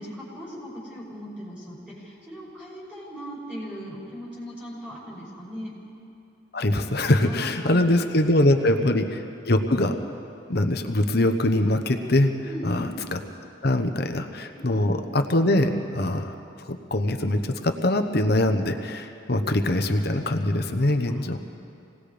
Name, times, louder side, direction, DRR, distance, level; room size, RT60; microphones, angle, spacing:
voice 1, 0.0-5.7 7.2-8.2 8.6-8.9 12.4-12.9 14.5-14.8 21.1-21.5, equal, 5° right, -7 dB, 6.0 m, -39 dB
voice 2, 6.5-9.2 9.5-10.0 10.5-12.3 12.6-13.2 13.6-21.4, left 1 dB, 55° left, 6 dB, 1.0 m, -23 dB
26.5 x 19.0 x 5.1 m, 2.6 s
head